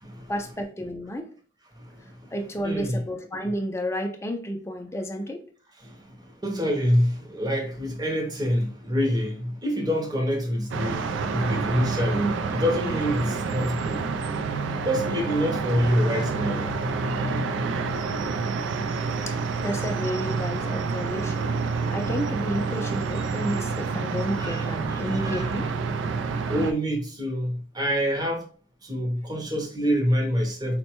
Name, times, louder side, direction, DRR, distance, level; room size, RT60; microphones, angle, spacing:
voice 1, 0.3-1.3 2.3-5.4 19.3-21.5 21.9-25.7, equal, 15° left, 0.4 m, -31 dB
voice 2, 1.7-2.3 2.6-3.0 5.8-14.0 14.8-17.2 24.3-25.4 26.5-28.4 28.8-30.8, equal, 20° right, 0.7 m, -26 dB
sound 1, 10.7-26.7, right 4 dB, 75° right, 0.3 m, -28 dB
4.2 x 2.2 x 2.9 m
head